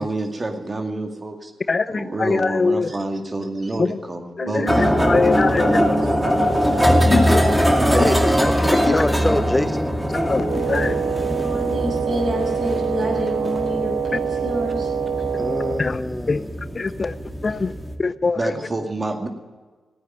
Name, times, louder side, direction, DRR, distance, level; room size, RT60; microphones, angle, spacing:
voice 1, 0.0-1.5 1.9-4.7 17.5-17.6 18.4-19.3, right 2 dB, 35° right, 2.2 m, -28 dB
voice 2, 1.7-2.9 3.8-4.0 4.4-6.0 7.1-7.4 8.0-8.1 8.7-9.0 10.1-11.0 15.8-16.0 16.3-16.4 16.7-17.2 17.4-17.7 18.0-18.5, left 4 dB, 45° left, 0.6 m, -23 dB
voice 3, 4.4-6.1 11.2-14.9 18.5-18.6, left 1 dB, 65° right, 6.6 m, -28 dB
sound 1, 4.7-17.9, equal, 5° right, 2.4 m, -21 dB
voice 4, 7.9-9.9 15.4-16.5, left 1 dB, 15° left, 0.9 m, -25 dB
Wind instrument woodwind instrument, 10.5-15.8, right 7 dB, 80° right, 1.6 m, -25 dB
15.0 x 9.3 x 9.1 m
supercardioid pair, 40°, 0 cm